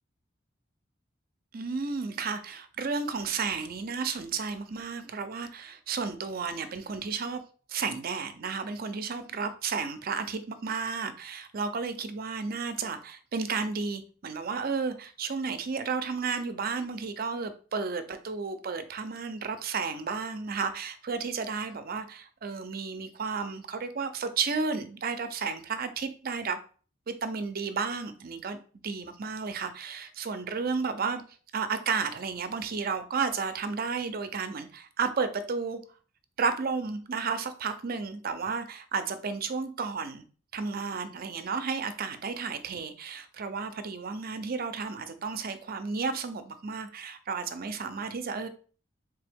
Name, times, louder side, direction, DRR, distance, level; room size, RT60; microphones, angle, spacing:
voice 1, 1.5-7.4 7.7-26.6 27.1-28.6 28.8-31.2 31.5-35.8 36.4-40.2 40.5-48.5, right 5 dB, 50° right, 0.5 m, -32 dB
3.8 x 3.3 x 3.5 m
head